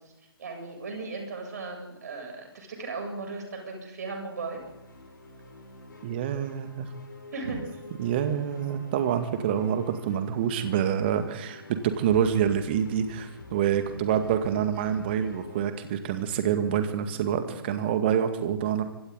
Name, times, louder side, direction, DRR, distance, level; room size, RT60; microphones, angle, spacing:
voice 1, 0.4-4.6 7.3-7.8, right 3 dB, 45° right, 2 dB, 7.8 m, -36 dB
sound 1, 4.5-15.7, left 2 dB, 55° left, 4.7 m, -47 dB
voice 2, 6.0-6.9 8.0-18.8, right 9 dB, 25° right, 8 dB, 2.0 m, -27 dB
25.5 x 25.5 x 4.0 m, 0.90 s
figure-of-eight pair, 140°, 13 cm